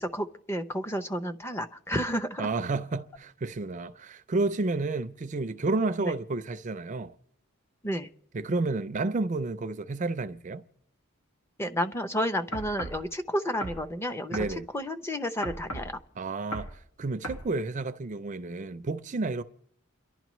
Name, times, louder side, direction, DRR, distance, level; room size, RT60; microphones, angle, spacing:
voice 1, 0.0-2.5 6.0-6.1 7.8-8.1 11.6-14.4 14.7-15.9, equal, 10° left, 0.5 m, -31 dB
voice 2, 2.4-7.1 8.3-10.6 14.3-14.7 16.2-16.7 17.0-19.4, right 3 dB, 35° right, 0.4 m, -30 dB
sound 1, 12.5-13.0 13.6-13.8 14.3-14.5 15.4-15.9 16.5-16.8 17.2-17.5, equal, 85° left, 1.6 m, -36 dB
29.0 x 11.5 x 3.1 m
head